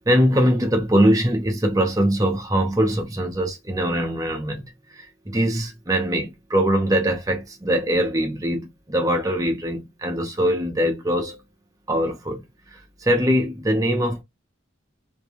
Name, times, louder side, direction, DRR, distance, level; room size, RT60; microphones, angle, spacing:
voice 1, 0.1-11.4 11.9-14.2, equal, 20° right, 0.6 m, -22 dB
2.6 x 2.2 x 2.8 m
head